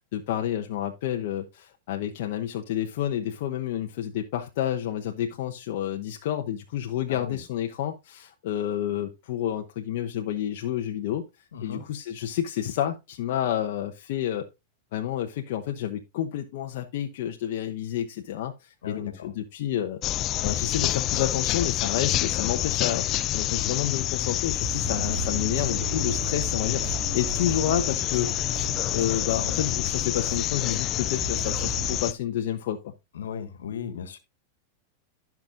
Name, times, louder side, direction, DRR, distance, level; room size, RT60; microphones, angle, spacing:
voice 1, 0.1-11.2 11.6-14.5 14.9-26.8 27.1-28.3 28.9-32.9, left 11 dB, 65° left, 0.9 m, -30 dB
voice 2, 7.1-7.4 11.5-11.8 18.8-19.3 33.1-34.2, left 7 dB, 85° left, 1.6 m, -36 dB
sound 1, 20.0-32.1, left 14 dB, 40° left, 0.4 m, -28 dB
Motor vehicle (road), 20.7-20.8 22.0-26.3, right 2 dB, 15° right, 2.2 m, -45 dB
sound 2, 24.6-32.0, right 7 dB, 50° right, 3.7 m, -36 dB
15.5 x 6.0 x 2.5 m
hypercardioid pair, 115°, 0 cm